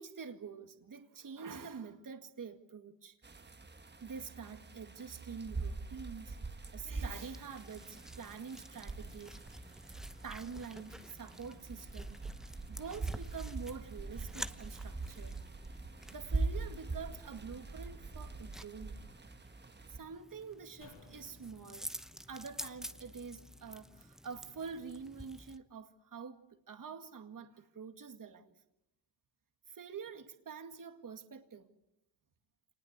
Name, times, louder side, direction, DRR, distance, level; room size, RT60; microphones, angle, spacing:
voice 1, 0.0-3.2 4.0-9.4 10.2-12.2 12.7-15.3 16.1-19.0 19.9-21.9 22.3-26.4 26.7-28.5 29.7-31.7, right 5 dB, 45° right, 2.0 m, -46 dB
sound 1, 3.2-20.0, right 3 dB, 25° right, 1.4 m, -43 dB
sound 2, 7.1-25.6, equal, ahead, 0.9 m, -50 dB
sound 3, 20.8-24.1 24.4-24.5, left 3 dB, 70° left, 7.9 m, -63 dB
26.5 x 20.0 x 8.1 m
cardioid pair, 95°, 46 cm